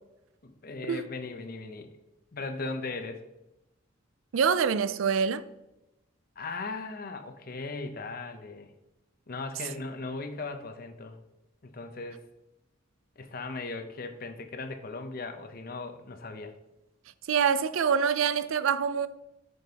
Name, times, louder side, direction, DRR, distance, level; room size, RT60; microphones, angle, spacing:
voice 1, 0.4-1.9 2.3-3.2 6.4-8.7 9.3-11.2 11.6-12.2 13.2-16.5, left 3 dB, 45° left, 0.7 m, -38 dB
voice 2, 4.3-5.4 17.3-19.1, right 6 dB, 85° right, 0.4 m, -25 dB
7.7 x 5.1 x 2.8 m
head